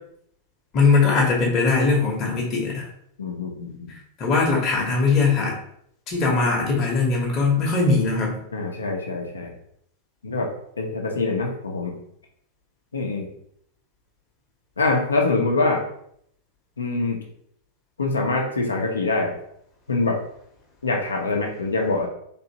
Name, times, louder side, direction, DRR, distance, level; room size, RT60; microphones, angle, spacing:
voice 1, 0.7-2.9 4.2-5.5 6.1-8.3, left 4 dB, 35° left, -2 dB, 0.9 m, -20 dB
voice 2, 3.2-3.9 8.5-9.5 10.2-10.5 10.8-12.0 12.9-13.3 14.8-15.8 16.8-17.2 18.0-19.3 19.9-20.2 20.8-22.1, left 3 dB, 75° left, 1 dB, 0.7 m, -24 dB
3.4 x 2.8 x 2.8 m, 0.69 s
figure-of-eight pair, 90°, 0 cm